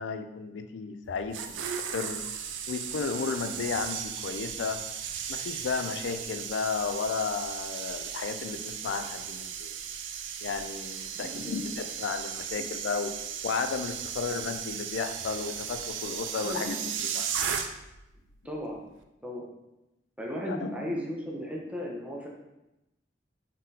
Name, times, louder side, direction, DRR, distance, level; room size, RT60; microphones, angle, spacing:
voice 1, 0.0-1.6 1.9-2.2 2.7-4.8 5.3-9.7 10.4-13.1 13.4-17.3 20.5-21.0, left 5 dB, 75° left, 8 dB, 0.3 m, -33 dB
sound 1, 1.1-18.0 18.3-18.6, right 8 dB, 85° right, 0.4 m, -36 dB
voice 2, 11.2-11.6 16.4-16.8 18.4-18.8 19.2-19.5 20.2-22.3, equal, 5° right, -2 dB, 0.6 m, -35 dB
3.7 x 3.7 x 2.7 m, 0.95 s
head